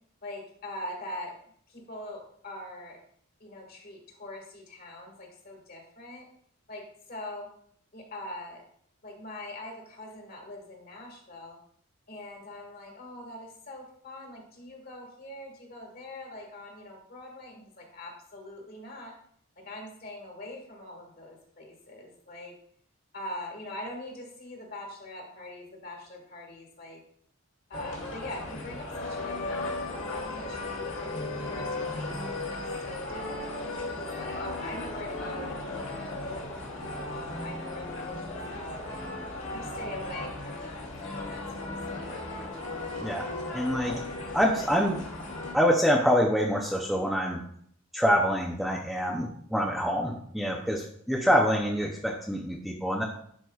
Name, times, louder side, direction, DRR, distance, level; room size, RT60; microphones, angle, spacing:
voice 1, 0.2-1.3 1.7-3.0 3.4-6.3 6.7-6.8 7.1-7.5 7.9-8.6 9.0-11.6 12.1-19.1 19.6-22.5 23.1-27.0 27.7-30.9 31.4-39.0 39.5-40.8 41.2-42.1, left 1 dB, 45° left, 0 dB, 1.7 m, -43 dB
sound 1, 27.7-45.5, left 2 dB, 60° left, 2.0 m, -36 dB
voice 2, 43.0-44.0 44.3-45.0 45.5-47.4 47.9-53.0, equal, ahead, -1 dB, 0.5 m, -26 dB
10.5 x 4.7 x 2.3 m, 0.66 s
head